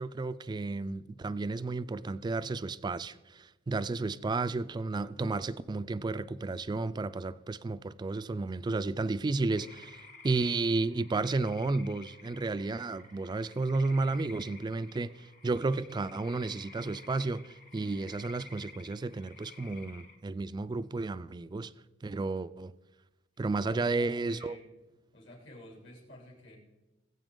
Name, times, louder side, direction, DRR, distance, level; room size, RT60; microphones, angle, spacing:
voice 1, 0.0-21.7 22.0-22.7 23.4-24.6, right 3 dB, 20° right, 0.3 m, -32 dB
sound 1, 9.5-20.2, left 3 dB, 40° left, 1.3 m, -53 dB
voice 2, 23.5-24.7 25.1-26.6, left 1 dB, 70° left, 3.2 m, -50 dB
20.0 x 8.0 x 3.8 m
head